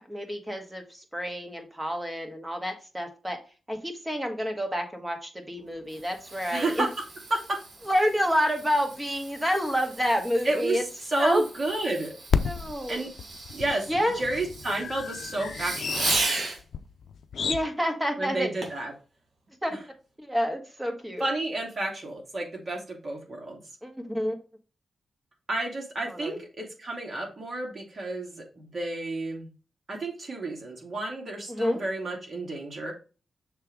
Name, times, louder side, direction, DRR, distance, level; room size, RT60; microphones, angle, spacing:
voice 1, 0.1-3.4 3.7-6.8 7.9-10.8 11.2-11.5 12.4-13.0 13.9-14.2 17.4-18.5 19.6-19.8 20.2-21.3 23.8-24.3 26.1-26.4 31.5-31.8, equal, 10° right, 4 dB, 1.7 m, -28 dB
Fireworks, 5.6-16.6 18.6-18.9 19.5-19.6, right 3 dB, 70° right, 2.6 m, -36 dB
voice 2, 6.5-6.9 7.3-7.6 10.4-10.8 11.1-12.1 12.9-13.1 13.5-13.9 14.1-16.1 18.2-18.9 19.7-19.8 21.2-23.6 25.5-29.5 29.9-32.9, right 2 dB, 40° right, 0 dB, 2.6 m, -31 dB
sound 1, 7.8-7.9 8.6-8.7 8.9-9.0 12.3-17.6, left 6 dB, 75° left, 0.5 m, -32 dB
6.7 x 3.4 x 4.7 m, 0.34 s
cardioid pair, 80°, 0 cm